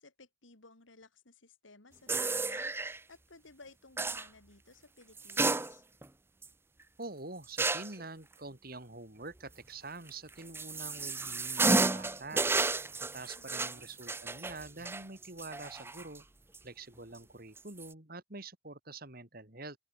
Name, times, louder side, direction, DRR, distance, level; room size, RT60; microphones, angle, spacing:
voice 1, 0.0-5.8 13.3-13.9, left 3 dB, 75° left, 2.7 m, -58 dB
sound 1, 2.1-3.0 4.0-4.3 5.2-6.1 6.4-6.5 7.6-8.0 10.1-16.2 16.5-16.6 17.6-17.9, right 3 dB, 10° right, 0.6 m, -32 dB
voice 2, 7.0-12.4 13.1-16.2 16.6-19.8, right 3 dB, 50° right, 3.2 m, -46 dB
open air
head